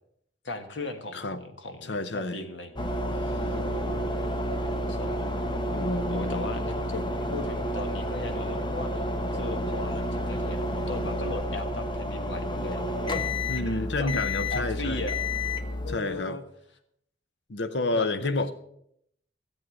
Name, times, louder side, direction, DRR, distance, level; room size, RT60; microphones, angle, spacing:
voice 1, 0.4-2.8 3.5-4.1 4.9-5.5 6.1-12.8 13.1-13.3 13.5-14.1 14.5-15.2 15.8-16.4 17.9-18.5, left 2 dB, 85° left, 1.5 m, -37 dB
voice 2, 1.8-2.4 3.3-3.4 5.7-6.5 13.5-15.1 15.9-16.4 17.5-18.5, left 2 dB, 70° left, 0.8 m, -30 dB
sound 1, 2.8-16.0, left 1 dB, 25° left, 1.0 m, -30 dB
14.0 x 7.7 x 6.3 m
head